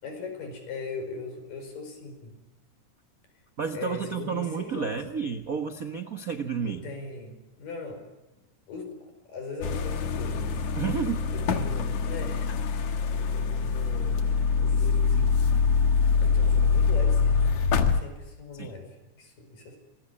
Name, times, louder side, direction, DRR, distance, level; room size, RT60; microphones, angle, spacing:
voice 1, 0.0-2.4 3.7-5.0 6.7-8.0 8.7-10.8 11.3-15.3 16.2-19.8, left 3 dB, 85° left, 6 dB, 6.7 m, -40 dB
voice 2, 3.6-6.9 10.7-11.3 18.5-18.7, right 6 dB, 80° right, 7 dB, 0.7 m, -31 dB
sound 1, 9.6-18.0, left 5 dB, 65° left, 2.7 m, -24 dB
26.0 x 20.0 x 9.9 m, 1.0 s
omnidirectional pair, 3.7 m